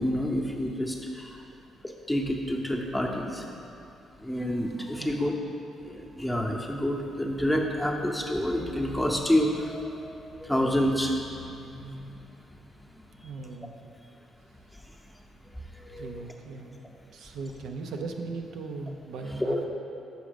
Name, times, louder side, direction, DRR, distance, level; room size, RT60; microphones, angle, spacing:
voice 1, 0.0-1.4 1.8-3.5 4.2-5.3 5.8-12.2 12.9-13.3 15.7-16.3 19.4-19.7, equal, 5° left, 0 dB, 0.7 m, -29 dB
voice 2, 5.0-5.4 13.2-13.7 16.0-16.8 17.1-19.7, right 3 dB, 80° right, 3 dB, 0.5 m, -38 dB
6.3 x 4.9 x 5.1 m, 2.7 s
cardioid pair, 90°, 0 cm